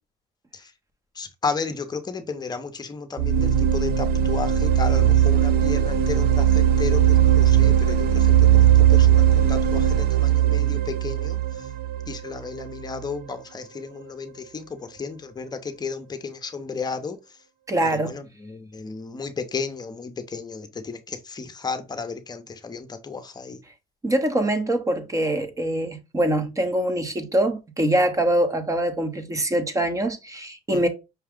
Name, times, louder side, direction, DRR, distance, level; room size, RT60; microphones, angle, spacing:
voice 1, 1.2-11.4 12.1-17.2 17.9-23.6 30.7-30.9, left 4 dB, 25° left, 0.8 m, -33 dB
sound 1, 3.2-13.0, right 10 dB, 65° right, 0.5 m, -19 dB
voice 2, 17.7-18.2 24.0-30.9, right 1 dB, 20° right, 0.9 m, -24 dB
5.7 x 2.3 x 3.6 m
cardioid pair, 110°, 17 cm